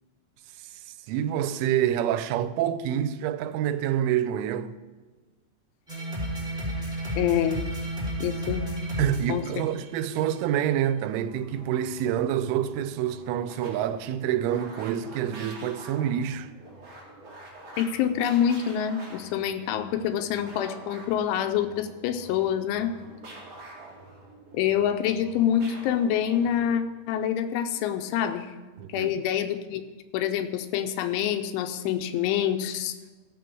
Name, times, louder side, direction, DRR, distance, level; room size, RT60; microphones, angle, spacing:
voice 1, 0.7-4.8 9.0-16.5 28.8-29.2, right 10 dB, 90° right, 3.1 m, -27 dB
sound 1, 5.9-10.3, right 1 dB, ahead, 2.1 m, -32 dB
voice 2, 7.1-7.6 8.2-8.7 9.3-9.4 17.8-22.9 24.5-28.5 28.9-29.8 30.1-33.0, left 9 dB, 85° left, 3.1 m, -26 dB
sound 2, 11.1-26.8, right 2 dB, 40° right, 2.2 m, -47 dB
15.5 x 6.9 x 4.6 m
omnidirectional pair, 5.5 m